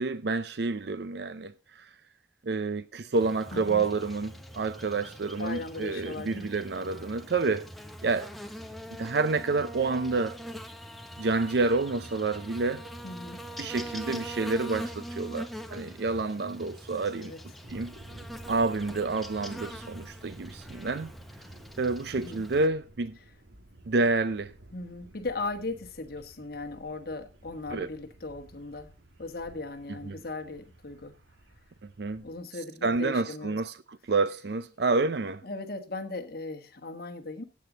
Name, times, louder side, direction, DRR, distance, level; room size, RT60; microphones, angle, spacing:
voice 1, 0.0-1.9 2.4-7.7 8.0-8.3 9.0-10.4 11.2-12.9 13.6-17.3 17.7-17.9 18.5-21.1 21.8-23.2 23.9-24.5 27.7-27.9 30.1-30.2 32.0-32.2 32.8-35.4, right 3 dB, 55° right, 0.5 m, -29 dB
Buzz, 3.1-22.7, equal, ahead, 0.9 m, -43 dB
voice 2, 3.5-3.8 5.4-6.5 13.0-13.4 17.1-17.4 22.1-22.4 24.7-28.9 29.2-31.1 32.2-33.6 35.4-37.4, left 3 dB, 50° left, 1.4 m, -38 dB
sound 1, 17.6-32.4, right 1 dB, 75° right, 2.1 m, -53 dB
14.5 x 8.6 x 3.9 m
head